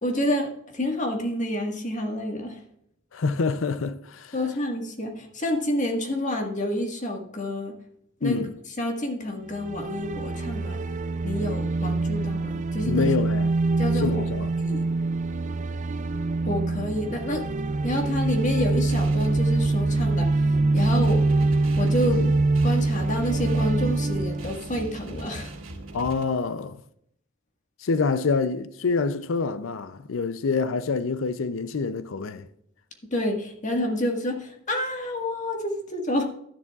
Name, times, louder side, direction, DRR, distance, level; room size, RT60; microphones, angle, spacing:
voice 1, 0.0-2.6 4.3-7.7 8.2-8.4 8.8-10.8 11.2-13.0 13.8-14.2 14.6-14.9 16.4-17.6 17.8-20.3 20.7-21.2 21.8-22.2 22.6-25.5 33.1-36.2, left 1 dB, 35° left, 1.6 m, -28 dB
voice 2, 3.1-4.3 8.2-8.6 12.9-13.5 13.9-14.5 22.2-22.3 25.9-26.8 27.8-32.5, left 4 dB, 70° left, 0.5 m, -26 dB
sound 1, 9.5-25.6, right 3 dB, 35° right, 0.4 m, -25 dB
sound 2, 18.9-26.2, right 1 dB, 75° right, 2.2 m, -40 dB
12.5 x 10.5 x 2.4 m
head